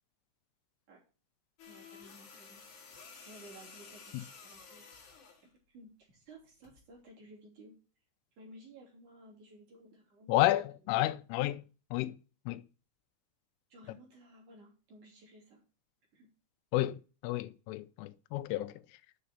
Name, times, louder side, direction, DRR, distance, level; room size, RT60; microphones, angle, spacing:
sound 1, 1.6-5.5 6.6-6.8, left 5 dB, 50° left, 2.8 m, -53 dB
voice 1, 1.7-2.9 3.3-4.8 5.7-7.7 8.4-10.7 11.4-11.6 13.7-15.6 16.1-16.3, right 1 dB, 45° right, 4.1 m, -56 dB
voice 2, 10.3-11.6 11.9-12.1 12.5-12.6 16.7-17.0 17.2-18.7, left 16 dB, 90° left, 3.2 m, -31 dB
7.8 x 6.3 x 6.7 m
omnidirectional pair, 5.6 m